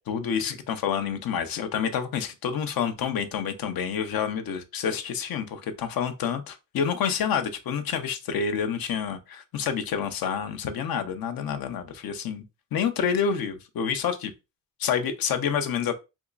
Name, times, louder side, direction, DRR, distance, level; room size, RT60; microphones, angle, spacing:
voice 1, 0.1-12.4 12.7-14.3 14.8-16.0, left 7 dB, 80° left, 0.7 m, -28 dB
3.5 x 2.9 x 2.4 m
cardioid pair, 95°, 35 cm